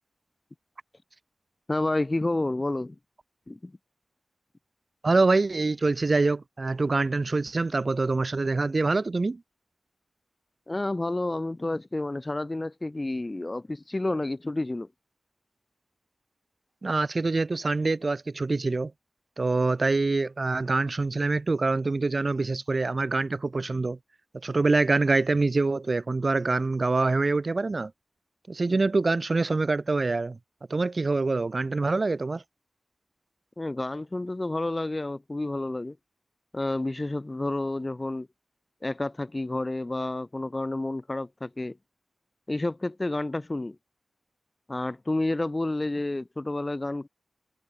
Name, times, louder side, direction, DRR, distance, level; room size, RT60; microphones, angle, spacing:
voice 1, 1.7-3.0 3.5-3.7 10.7-14.9 33.6-36.0 36.5-38.3 38.8-41.8 42.5-43.8 44.7-47.1, left 2 dB, 25° left, 0.8 m, -30 dB
voice 2, 5.0-9.4 16.8-18.9 19.4-24.0 24.4-27.9 28.5-30.4 30.7-32.4, right 3 dB, 45° right, 1.5 m, -25 dB
wide cardioid pair, 110°, 0 cm